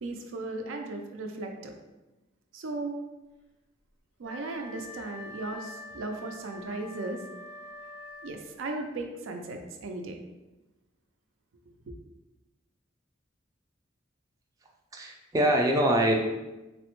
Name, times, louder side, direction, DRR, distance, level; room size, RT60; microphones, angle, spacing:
voice 1, 0.0-1.8 2.5-3.0 4.2-7.2 8.2-10.2, right 2 dB, 90° right, 4 dB, 0.4 m, -36 dB
Wind instrument woodwind instrument, 4.2-8.7, left 2 dB, 75° left, 0.5 m, -45 dB
voice 2, 14.9-16.2, right 1 dB, 20° right, 0 dB, 0.3 m, -24 dB
3.5 x 2.0 x 2.9 m, 1.0 s
head